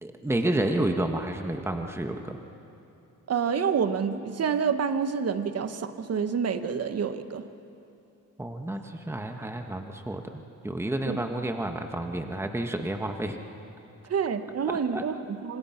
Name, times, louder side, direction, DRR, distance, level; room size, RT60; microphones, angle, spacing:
voice 1, 0.0-2.4 8.4-10.2 10.6-13.4 14.9-15.0, right 1 dB, 10° right, 4 dB, 1.6 m, -30 dB
voice 2, 3.3-7.5 11.1-11.2 14.1-15.6, right 6 dB, 50° right, 9 dB, 1.4 m, -28 dB
26.5 x 26.0 x 6.0 m, 2.8 s
cardioid pair, 85°, 31 cm